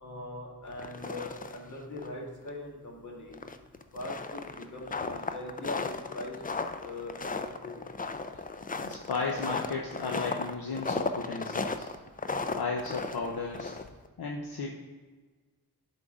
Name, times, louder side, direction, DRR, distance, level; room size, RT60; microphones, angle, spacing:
voice 1, 0.0-3.4 3.9-6.4 6.8-7.8, left 1 dB, 45° left, -2 dB, 1.8 m, -41 dB
sound 1, 0.7-1.7 2.0-2.1 2.5-2.6 3.3-14.1, left 4 dB, 25° left, 0.3 m, -35 dB
voice 2, 8.8-11.9 12.5-13.8 14.2-14.7, left 4 dB, 70° left, -1 dB, 0.9 m, -34 dB
11.0 x 3.7 x 3.7 m, 1.4 s
wide cardioid pair, 140°, 39 cm